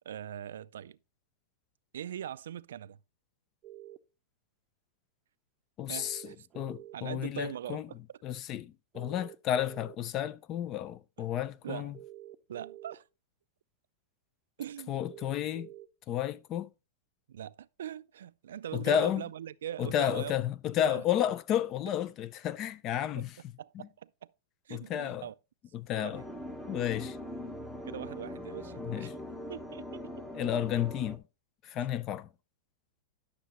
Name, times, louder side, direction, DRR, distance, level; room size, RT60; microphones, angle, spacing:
voice 1, 0.1-1.0 1.9-3.0 5.9-6.5 6.9-8.2 11.6-12.0 12.5-13.1 14.6-15.0 17.3-20.4 20.8-21.0 23.2-23.3 23.6-24.3 24.7-25.4 25.9-26.2 27.8-29.1 29.5-30.2 31.8-31.9, right 10 dB, 85° right, 0.4 m, -41 dB
sound 1, 3.6-4.0 5.9-7.0 8.9-10.0 11.9-13.0 14.9-15.9, right 14 dB, 25° right, 0.6 m, -48 dB
voice 2, 5.8-6.2 6.5-7.9 8.2-12.0 14.9-15.7 16.1-16.7 18.7-19.2 19.8-23.3 24.7-25.3 25.7-26.2 26.7-27.2 28.8-29.1 30.3-31.2 31.6-32.3, left 10 dB, 30° left, 0.4 m, -32 dB
sound 2, 26.1-31.2, left 1 dB, 5° left, 0.8 m, -41 dB
11.5 x 6.6 x 3.0 m
supercardioid pair, 160°, 0 cm